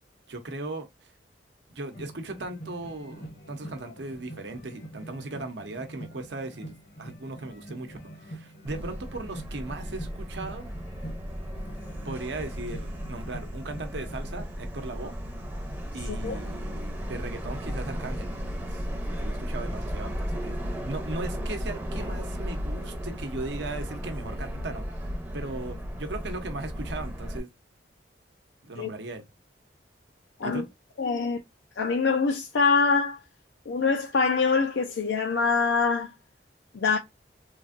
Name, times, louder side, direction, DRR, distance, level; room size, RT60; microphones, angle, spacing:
voice 1, 0.3-1.1 1.7-10.7 12.0-15.1 15.9-18.3 18.6-20.6 20.9-27.5 28.6-29.2 30.4-30.7, right 2 dB, 75° right, 0.7 m, -38 dB
sound 1, 1.9-14.4, right 1 dB, 55° left, 0.9 m, -45 dB
Subway metro underground, 8.7-27.4, equal, 10° right, 0.6 m, -35 dB
voice 2, 16.1-16.4 28.8-28.9 30.4-30.6 31.0-31.4 31.8-33.2 33.7-36.1 36.7-37.0, left 4 dB, 85° left, 0.4 m, -24 dB
3.2 x 2.5 x 2.5 m
head